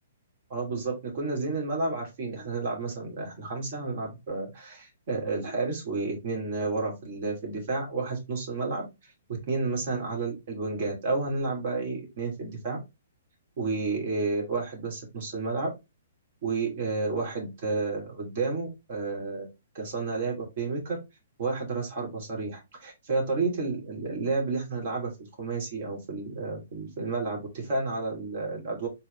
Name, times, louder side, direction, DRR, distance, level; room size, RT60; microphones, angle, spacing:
voice 1, 0.5-9.1 9.5-12.8 13.6-15.7 16.4-19.5 19.7-21.0 21.4-25.1 25.4-28.9, right 3 dB, 50° right, 0 dB, 2.7 m, -31 dB
4.3 x 4.0 x 3.1 m, 0.23 s
figure-of-eight pair, 120°, 0 cm